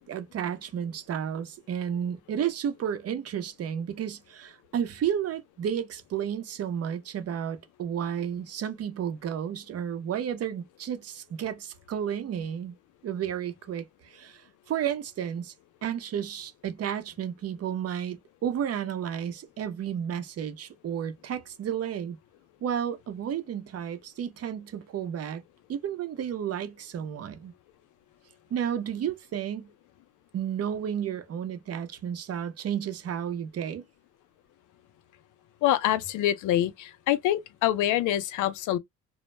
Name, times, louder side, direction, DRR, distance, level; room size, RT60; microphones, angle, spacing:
voice 1, 0.0-12.7 13.0-15.5 15.8-22.2 22.6-25.4 25.7-27.5 28.5-29.7 30.3-33.8, right 9 dB, 55° right, 0.6 m, -32 dB
voice 2, 35.6-38.8, left 12 dB, 85° left, 0.5 m, -25 dB
2.2 x 2.0 x 3.1 m
cardioid pair, 90°, 30 cm